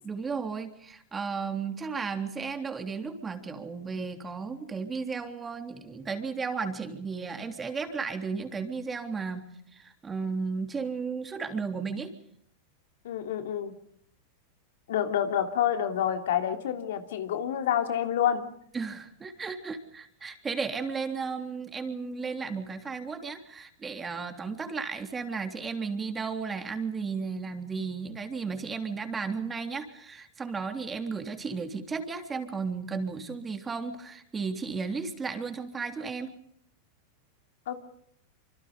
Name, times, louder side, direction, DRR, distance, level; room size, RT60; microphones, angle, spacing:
voice 1, 0.0-12.1 18.7-36.3, right 5 dB, 20° right, 6 dB, 3.5 m, -34 dB
voice 2, 13.0-13.7 14.9-18.5 37.7-37.8, left 9 dB, 80° left, 7 dB, 3.1 m, -28 dB
26.5 x 25.0 x 5.2 m, 0.67 s
hypercardioid pair, 125°, 0 cm